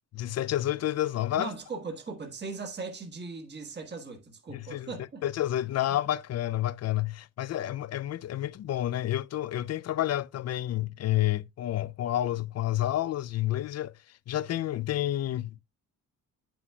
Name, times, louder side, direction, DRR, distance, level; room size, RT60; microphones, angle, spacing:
voice 1, 0.1-1.5 4.5-4.9 5.2-13.9 14.3-15.6, left 13 dB, 55° left, 0.4 m, -29 dB
voice 2, 1.4-5.2, right 4 dB, 35° right, 1.5 m, -39 dB
9.4 x 6.1 x 2.2 m
cardioid pair, 140°, 31 cm